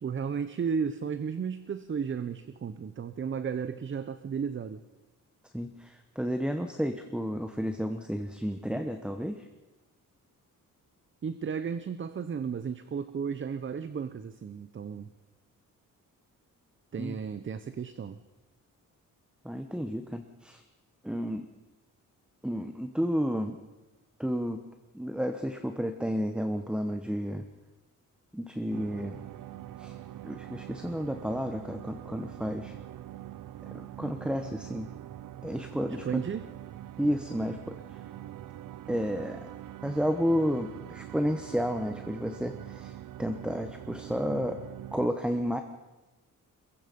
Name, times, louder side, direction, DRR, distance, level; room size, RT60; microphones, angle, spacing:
voice 1, 0.0-4.8 11.2-15.1 16.9-18.2 35.9-36.4, right 6 dB, 35° right, 12 dB, 0.8 m, -34 dB
voice 2, 5.5-9.5 17.0-17.2 19.4-20.6 21.0-21.5 22.4-23.6 24.2-24.6 24.9-27.4 28.3-29.3 29.8-30.0 30.2-32.8 33.6-34.9 35.4-36.2 37.0-38.0 38.9-39.5 39.8-44.6 44.9-45.6, equal, 5° right, 7 dB, 1.1 m, -31 dB
sound 1, 28.7-45.1, right 12 dB, 75° right, 0.6 m, -44 dB
23.0 x 21.5 x 5.3 m, 1.1 s
wide cardioid pair, 130°, 33 cm